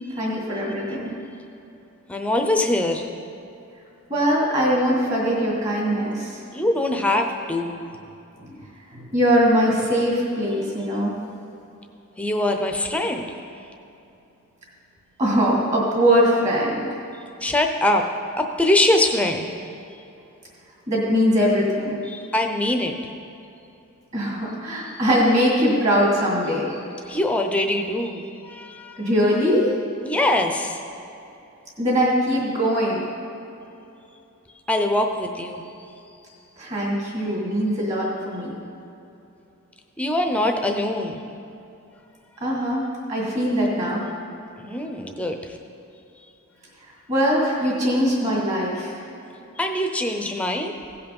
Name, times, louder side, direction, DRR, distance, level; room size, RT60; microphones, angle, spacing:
voice 1, 0.1-1.1 4.1-6.4 8.4-8.6 8.9-11.1 15.2-16.9 20.9-22.0 24.1-26.7 29.0-29.8 31.8-33.0 36.6-38.6 42.4-44.0 47.1-48.9, equal, 35° right, -4 dB, 2.5 m, -21 dB
voice 2, 2.1-3.1 6.5-7.8 12.2-13.4 17.1-18.1 18.4-19.5 22.1-22.9 27.1-29.1 30.0-30.8 34.7-35.6 40.0-41.2 44.6-45.6 49.6-50.8, left 1 dB, 5° left, 4 dB, 0.7 m, -23 dB
16.0 x 5.7 x 5.4 m, 2.8 s
head